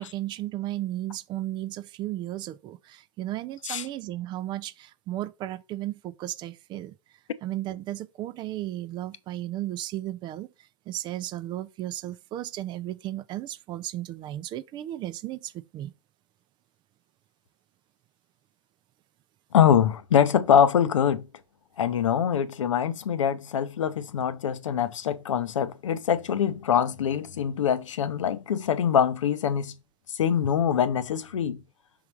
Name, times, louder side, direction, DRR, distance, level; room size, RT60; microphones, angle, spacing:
voice 1, 0.0-6.9 7.4-10.5 10.9-15.9, right 14 dB, 30° right, 0.4 m, -34 dB
voice 2, 19.5-21.3 21.8-29.7 30.1-31.6, left 8 dB, 75° left, 0.8 m, -24 dB
5.6 x 3.7 x 4.5 m
hypercardioid pair, 110°, 16 cm